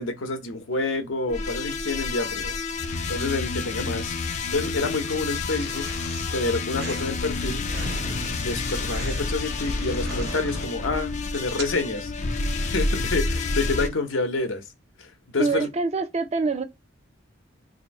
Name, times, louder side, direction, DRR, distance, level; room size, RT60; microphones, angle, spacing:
voice 1, 0.0-2.5 3.1-5.9 6.3-7.7 8.3-12.1 12.6-14.6 15.0-15.7, left 3 dB, 85° left, 0.8 m, -28 dB
sound 1, 1.3-13.9, left 3 dB, 40° left, 0.4 m, -29 dB
sound 2, 5.1-7.0 7.3-7.4 7.6-7.7 8.0-10.7, left 5 dB, 55° left, 0.9 m, -42 dB
sound 3, 6.8-11.0 11.3-11.9, right 2 dB, 60° right, 0.9 m, -39 dB
voice 2, 15.4-16.6, right 4 dB, 35° right, 0.5 m, -25 dB
2.8 x 2.6 x 4.0 m
head